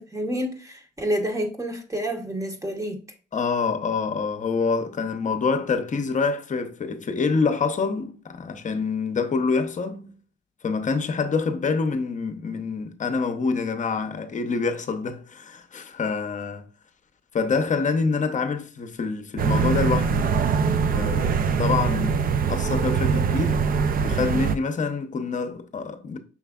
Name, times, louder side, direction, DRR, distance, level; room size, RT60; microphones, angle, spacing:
voice 1, 0.0-3.0, equal, 15° right, 0.9 m, -29 dB
voice 2, 3.3-10.2 10.6-16.7 17.3-20.5 20.9-23.7 24.0-26.2, left 4 dB, 40° left, 0.7 m, -26 dB
sound 1, 19.4-24.6, right 6 dB, 45° right, 0.4 m, -23 dB
5.9 x 3.2 x 2.3 m
cardioid pair, 90°, 20 cm